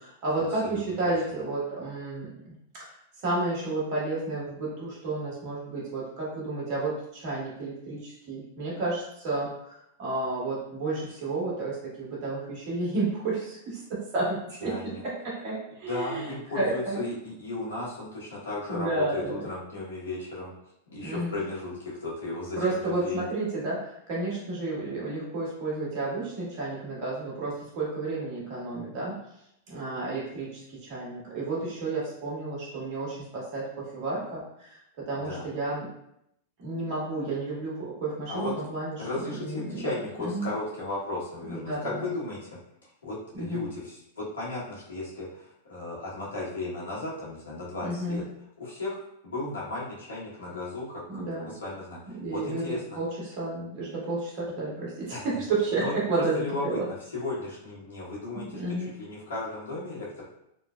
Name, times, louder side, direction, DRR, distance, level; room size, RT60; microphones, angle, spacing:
voice 1, 0.0-2.9 3.2-17.1 18.7-19.5 21.0-21.3 22.6-29.2 29.7-35.9 36.6-40.5 41.4-42.1 43.3-43.7 47.8-48.2 51.1-51.5 52.1-56.9 58.3-58.9, right 2 dB, 55° right, -6 dB, 1.5 m, -31 dB
voice 2, 14.6-15.0 15.9-20.5 20.9-23.2 35.2-35.5 38.3-38.5 39.0-42.4 43.0-48.2 48.6-52.8 55.1-55.3 55.8-55.9 56.3-58.6 59.0-60.2, left 2 dB, 85° left, -7 dB, 1.3 m, -35 dB
3.6 x 2.0 x 2.4 m, 0.77 s
hypercardioid pair, 105°, 0 cm